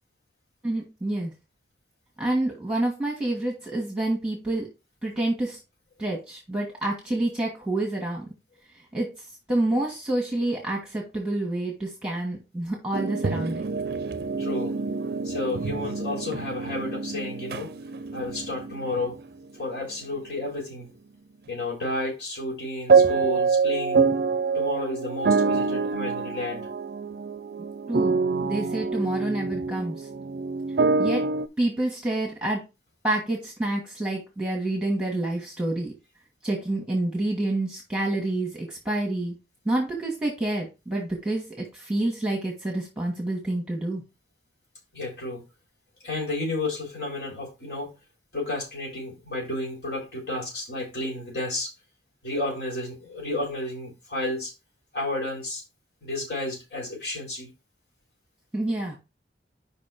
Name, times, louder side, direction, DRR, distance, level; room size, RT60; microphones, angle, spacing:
voice 1, 0.6-1.3 2.2-4.7 5.0-5.6 6.0-8.3 8.9-13.7 27.9-30.1 31.0-31.2 31.6-32.6 33.0-35.9 36.4-39.3 39.6-44.0 58.5-59.0, right 1 dB, 5° right, -1 dB, 1.4 m, -28 dB
sound 1, 12.9-19.2 22.9-31.5, right 4 dB, 60° right, 0.4 m, -26 dB
voice 2, 14.4-14.7 15.2-17.7 18.1-19.2 19.5-20.9 21.5-24.1 24.5-26.7 44.9-45.4 46.0-47.9 48.3-51.7 52.2-54.5 54.9-55.6 56.0-57.5, left 2 dB, 75° left, -2 dB, 3.7 m, -31 dB
5.3 x 4.1 x 5.8 m, 0.27 s
head